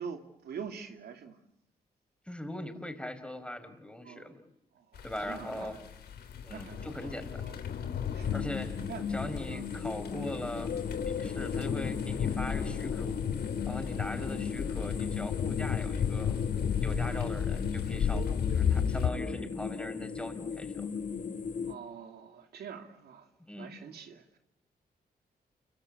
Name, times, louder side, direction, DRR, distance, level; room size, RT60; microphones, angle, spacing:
voice 1, 0.0-1.4 4.0-4.3 4.7-5.8 6.5-7.1 7.4-7.6 8.1-8.4 8.9-9.1 9.5-9.7 14.1-14.3 17.0-17.3 21.7-23.3 23.6-24.4, right 7 dB, 85° right, 2.8 m, -45 dB
voice 2, 2.3-4.4 5.0-5.8 6.4-7.4 8.3-8.8 9.1-10.7 11.1-13.1 13.7-16.4 16.8-20.9 23.4-23.7, left 1 dB, 5° left, 5.3 m, -40 dB
sound 1, 4.9-19.1, left 7 dB, 85° left, 3.4 m, -33 dB
sound 2, 8.2-21.7, left 6 dB, 55° left, 2.0 m, -37 dB
29.0 x 24.5 x 8.4 m
cardioid pair, 80°, 16 cm